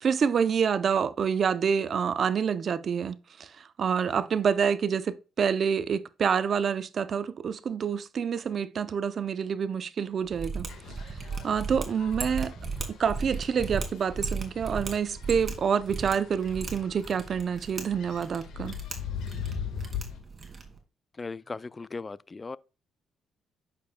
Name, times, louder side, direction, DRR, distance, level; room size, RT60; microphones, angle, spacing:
voice 1, 0.0-10.7 11.4-12.5 12.9-18.8, right 7 dB, 50° right, 0.5 m, -27 dB
Mechanisms, 10.3-20.8, right 4 dB, 35° right, 2.3 m, -37 dB
sound 1, 10.7-20.2, left 7 dB, 80° left, 1.6 m, -41 dB
voice 2, 21.2-22.6, left 4 dB, 30° left, 0.3 m, -37 dB
9.3 x 6.8 x 2.2 m
cardioid pair, 90°, 0 cm